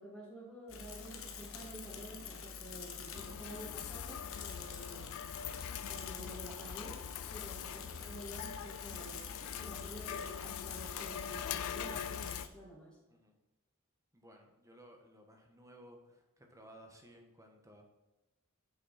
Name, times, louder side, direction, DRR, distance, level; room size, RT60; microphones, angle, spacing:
voice 1, 0.0-5.2 5.8-7.0 7.3-13.0, equal, 5° left, -8 dB, 2.2 m, -50 dB
Bicycle / Mechanisms, 0.7-12.5, left 6 dB, 65° left, 1.1 m, -47 dB
sound 1, 3.1-12.5, left 9 dB, 85° left, 0.4 m, -43 dB
voice 2, 14.1-17.8, equal, 15° right, 2 dB, 1.4 m, -58 dB
8.3 x 6.5 x 4.3 m, 1.1 s
head